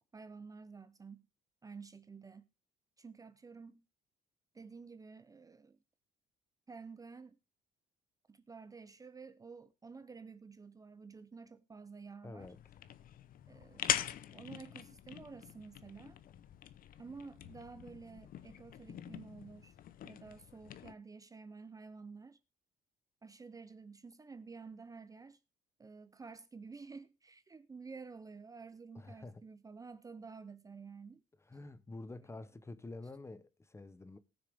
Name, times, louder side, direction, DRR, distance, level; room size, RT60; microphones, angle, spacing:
voice 1, 0.1-1.3 1.6-2.5 3.0-3.8 4.5-5.8 6.7-7.4 8.3-12.5 13.5-13.9 14.3-16.2 17.0-19.7 20.0-22.4 23.2-25.4 25.8-31.2, right 4 dB, 20° right, 0.7 m, -51 dB
voice 2, 12.2-12.6 28.9-29.4 31.5-34.2, left 2 dB, 15° left, 0.9 m, -48 dB
sound 1, 12.4-20.9, left 10 dB, 55° left, 0.8 m, -43 dB
19.0 x 6.5 x 3.5 m
cardioid pair, 110°, 17 cm